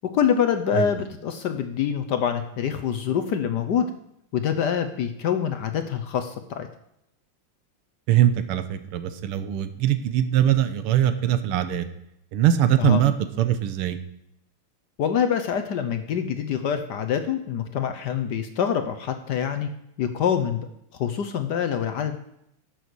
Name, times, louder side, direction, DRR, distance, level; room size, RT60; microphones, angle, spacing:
voice 1, 0.0-3.9 4.3-6.7 12.8-13.0 15.0-19.7 20.0-20.7 21.0-22.2, left 8 dB, 65° left, 8 dB, 1.1 m, -25 dB
voice 2, 8.1-11.9 12.3-14.0, right 11 dB, 90° right, 10 dB, 1.8 m, -22 dB
11.5 x 6.9 x 6.1 m, 0.77 s
omnidirectional pair, 2.4 m